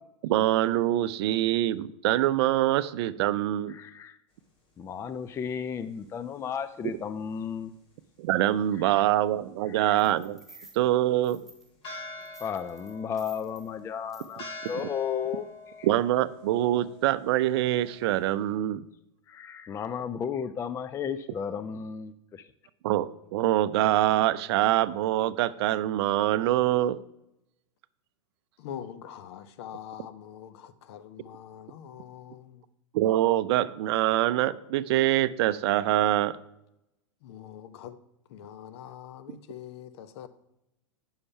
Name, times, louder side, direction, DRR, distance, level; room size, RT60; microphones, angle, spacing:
voice 1, 0.2-3.8 8.2-10.4 10.7-11.4 15.8-18.9 22.8-27.0 32.9-36.4, right 14 dB, 55° right, 0.5 m, -24 dB
voice 2, 3.7-4.2 4.8-7.7 9.7-10.0 12.4-15.5 15.8-15.9 19.3-22.4, left 7 dB, 15° left, 0.4 m, -34 dB
sound 1, 10.0-10.8 11.2-12.0 12.2-13.7 14.1-14.4 14.7-14.8, right 3 dB, ahead, 1.7 m, -53 dB
sound 2, 11.8-18.3, left 2 dB, 35° left, 2.9 m, -46 dB
voice 3, 28.6-32.6 37.2-38.0 38.3-40.3, left 9 dB, 55° left, 0.9 m, -43 dB
9.7 x 5.7 x 5.7 m
hypercardioid pair, 110°, 16 cm